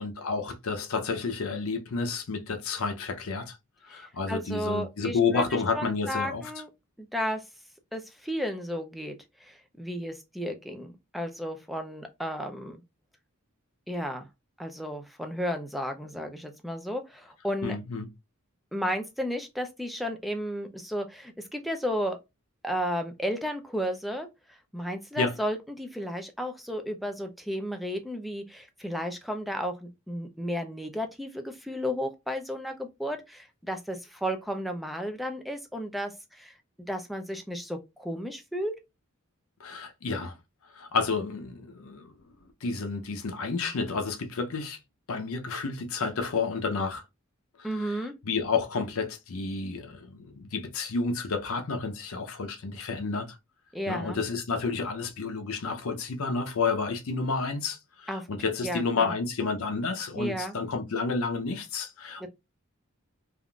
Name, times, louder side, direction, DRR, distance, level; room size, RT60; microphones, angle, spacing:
voice 1, 0.0-3.6 3.8-6.4 17.6-18.1 25.2-25.3 39.6-40.4 40.7-42.1 42.6-44.8 45.1-47.0 47.8-53.4 53.9-62.3, left 4 dB, 70° left, 0.6 m, -30 dB
voice 2, 3.9-5.4 5.7-6.7 7.0-7.4 7.9-12.8 13.9-14.3 14.6-17.8 18.7-22.2 22.6-36.5 36.9-38.7 47.6-48.1 53.7-54.2 58.1-58.3 58.6-59.1 60.1-60.5 62.2-62.3, equal, ahead, 0.4 m, -33 dB
3.5 x 2.4 x 2.3 m
head